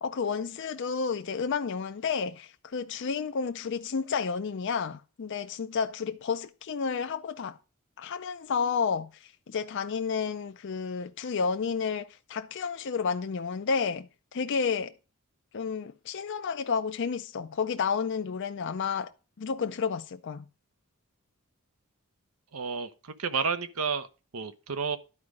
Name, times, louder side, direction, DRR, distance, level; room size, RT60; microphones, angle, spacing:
voice 1, 0.0-7.6 8.0-14.9 15.5-19.1 19.4-20.5, left 5 dB, 55° left, 0.4 m, -31 dB
voice 2, 22.5-22.9 23.2-24.1 24.3-25.0, right 5 dB, 80° right, 0.9 m, -30 dB
11.0 x 4.9 x 5.2 m
head